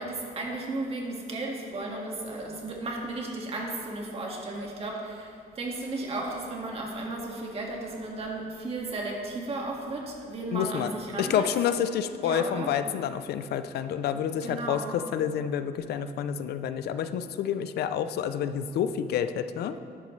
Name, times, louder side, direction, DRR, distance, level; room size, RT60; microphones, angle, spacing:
voice 1, 0.0-11.5 12.2-12.7 14.4-15.0, right 2 dB, 40° right, -1 dB, 1.9 m, -34 dB
voice 2, 10.5-10.9 11.2-19.8, left 9 dB, 85° left, 11 dB, 0.5 m, -29 dB
12.5 x 11.0 x 3.2 m, 2.3 s
cardioid pair, 140°, 16 cm